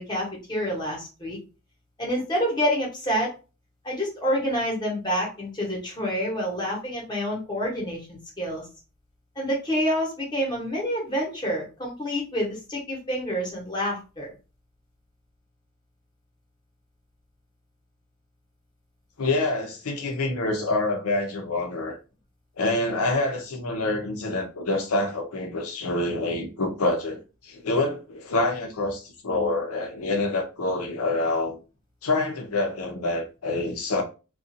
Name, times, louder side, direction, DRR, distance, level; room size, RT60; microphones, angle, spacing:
voice 1, 0.0-1.4 2.0-3.3 3.8-8.7 9.4-14.3, equal, 20° left, 1.0 m, -28 dB
voice 2, 19.2-22.0 22.6-31.6 32.0-34.0, left 2 dB, 80° left, 0.7 m, -26 dB
2.5 x 2.3 x 2.6 m
head